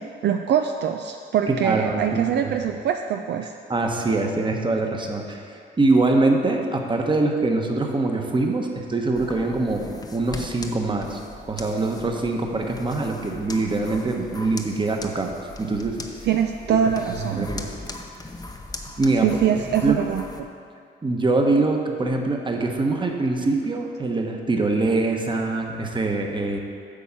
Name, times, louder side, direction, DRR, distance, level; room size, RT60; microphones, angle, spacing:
voice 1, 0.0-3.5 16.2-17.5 19.2-20.3, right 8 dB, 60° right, 5 dB, 0.4 m, -23 dB
voice 2, 1.5-2.5 3.7-5.4 5.8-11.2 11.5-16.0 16.7-16.8 17.1-17.7 19.0-19.3 19.8-20.0 21.0-26.6, right 2 dB, 25° right, 2 dB, 1.1 m, -23 dB
sound 1, 9.2-20.4, left 2 dB, 20° left, 0.8 m, -39 dB
8.6 x 4.6 x 7.3 m, 2.4 s
cardioid pair, 90°, 20 cm